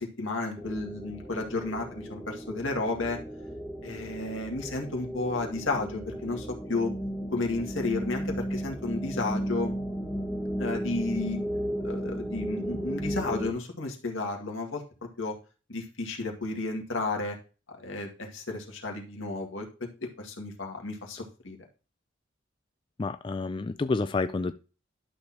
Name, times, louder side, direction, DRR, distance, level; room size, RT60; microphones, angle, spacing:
voice 1, 0.0-3.2 3.8-6.9 7.3-9.7 10.6-11.4 11.8-14.8 15.2-15.4 15.7-17.4 17.7-21.6, left 3 dB, 80° left, 2 dB, 2.1 m, -32 dB
sound 1, 0.6-13.5, equal, 5° left, 1.2 m, -35 dB
voice 2, 23.0-24.5, left 3 dB, 25° left, 11 dB, 0.3 m, -29 dB
11.5 x 6.6 x 2.9 m, 0.35 s
head